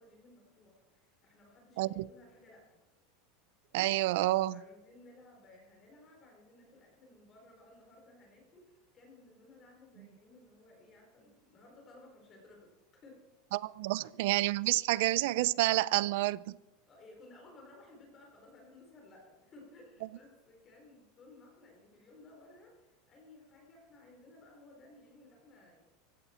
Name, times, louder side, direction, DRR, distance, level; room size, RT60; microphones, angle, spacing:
voice 1, 0.0-2.8 4.5-13.3 16.9-25.8, left 2 dB, 25° left, 4.0 m, -58 dB
voice 2, 1.8-2.1 3.7-4.6 13.5-16.6, right 17 dB, 60° right, 0.5 m, -29 dB
20.0 x 16.0 x 4.4 m
supercardioid pair, 170°, 0 cm